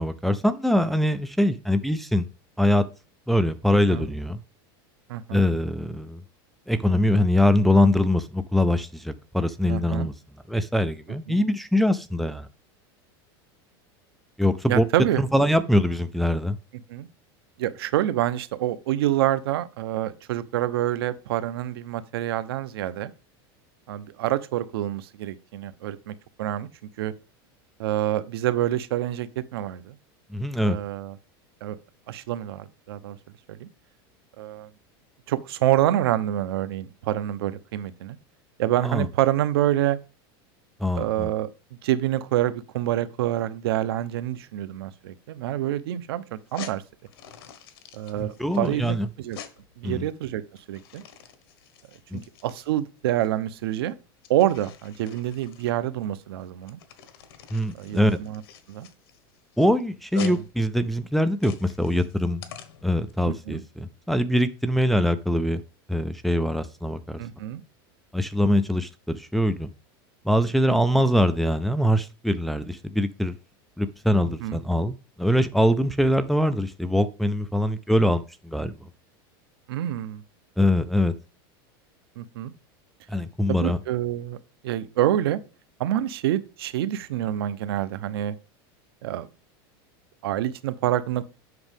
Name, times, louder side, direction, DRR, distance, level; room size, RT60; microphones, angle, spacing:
voice 1, 0.0-2.3 2.6-2.8 3.3-4.4 5.3-6.2 6.7-10.1 10.5-12.5 14.4-14.8 15.2-16.6 30.3-30.8 38.8-39.1 40.8-41.3 48.2-49.1 49.8-50.1 52.1-52.2 57.5-58.2 59.6-62.4 62.8-65.6 65.9-67.2 68.1-69.7 70.2-73.3 73.8-78.9 80.6-81.1 83.1-83.8, left 1 dB, ahead, 0.4 m, -23 dB
voice 2, 5.1-5.5 9.7-10.1 11.3-11.4 14.7-15.2 16.9-17.1 17.6-23.1 23.9-26.1 26.4-26.7 27.0-27.1 27.8-30.0 30.7-31.1 31.6-31.8 32.1-33.2 33.5-33.7 34.4-34.7 35.3-38.2 38.6-40.0 40.9-41.5 41.8-46.8 47.9-49.4 49.8-50.4 50.7-51.0 52.1-53.9 54.3-56.8 57.7-58.4 58.7-58.9 60.2-60.4 63.2-63.6 67.2-67.6 70.7-71.0 74.2-74.6 79.7-80.2 82.2-82.5 83.5-84.4 84.6-85.4 85.8-88.4 89.0-89.3 90.2-91.2, right 13 dB, 85° right, 0.9 m, -27 dB
sound 1, 46.4-63.1, left 8 dB, 90° left, 1.3 m, -47 dB
7.9 x 6.1 x 3.5 m
supercardioid pair, 165°, 12 cm